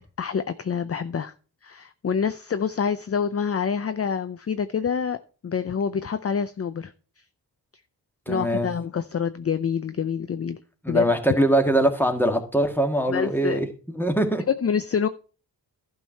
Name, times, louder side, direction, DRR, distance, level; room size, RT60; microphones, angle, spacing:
voice 1, 0.2-1.3 1.6-5.2 5.4-6.9 8.3-10.6 10.9-11.1 13.1-13.6 14.5-15.1, left 6 dB, 35° left, 0.5 m, -26 dB
voice 2, 8.3-8.7 10.8-14.4, right 1 dB, 5° left, 1.7 m, -22 dB
11.5 x 4.6 x 5.6 m
wide cardioid pair, 70°, 41 cm